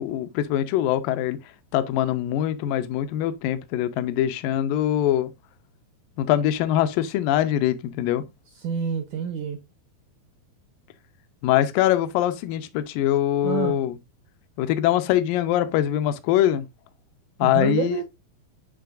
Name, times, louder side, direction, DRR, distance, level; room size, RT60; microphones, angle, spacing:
voice 1, 0.0-1.4 1.7-5.3 6.2-8.2 11.4-14.0 14.6-16.7 17.4-18.0, left 12 dB, 80° left, 2.1 m, -23 dB
voice 2, 8.6-9.6 13.4-13.8 17.4-18.0, right 8 dB, 85° right, 1.7 m, -27 dB
10.5 x 3.8 x 2.4 m
omnidirectional pair, 4.4 m